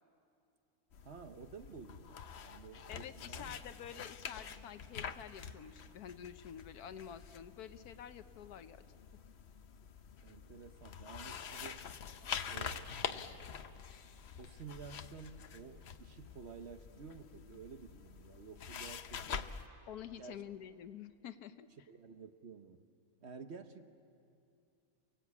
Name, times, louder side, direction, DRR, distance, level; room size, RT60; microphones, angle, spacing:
sound 1, 0.9-19.7, left 7 dB, 55° left, 0.9 m, -46 dB
voice 1, 1.0-3.6 10.2-11.9 12.5-13.6 14.4-19.5 20.2-20.4 21.7-22.9 23.2-23.9, right 5 dB, 50° right, 8 dB, 1.1 m, -52 dB
voice 2, 2.9-8.8 19.9-21.7, left 9 dB, 85° left, 11 dB, 1.4 m, -49 dB
29.0 x 18.5 x 8.4 m, 2.6 s
omnidirectional pair, 1.6 m